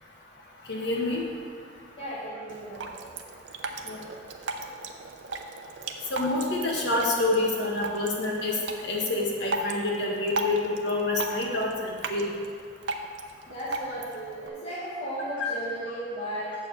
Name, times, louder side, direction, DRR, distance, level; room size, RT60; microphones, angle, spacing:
voice 1, 0.6-1.2 3.8-4.0 6.1-12.3 15.4-15.5, left 2 dB, 75° left, -2 dB, 1.6 m, -27 dB
voice 2, 2.0-3.0 13.5-16.5, right 1 dB, 30° left, -10 dB, 1.7 m, -35 dB
Drip, 2.5-14.5, right 2 dB, 85° right, 0.6 m, -37 dB
7.6 x 4.7 x 7.0 m, 2.1 s
head